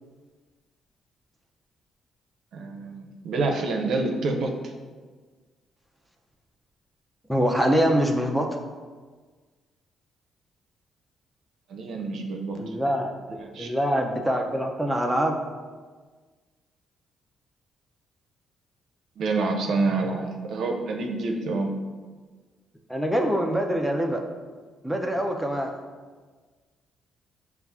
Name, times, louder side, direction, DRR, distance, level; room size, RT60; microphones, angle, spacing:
voice 1, 2.5-4.7 11.7-12.8 13.4-13.7 19.2-21.8, right 3 dB, 70° right, 2 dB, 0.5 m, -27 dB
voice 2, 7.3-8.5 12.6-13.1 13.6-15.4 22.9-24.2 24.8-25.7, equal, ahead, 2 dB, 0.5 m, -24 dB
5.5 x 2.4 x 3.5 m, 1.4 s
cardioid pair, 90°, 0 cm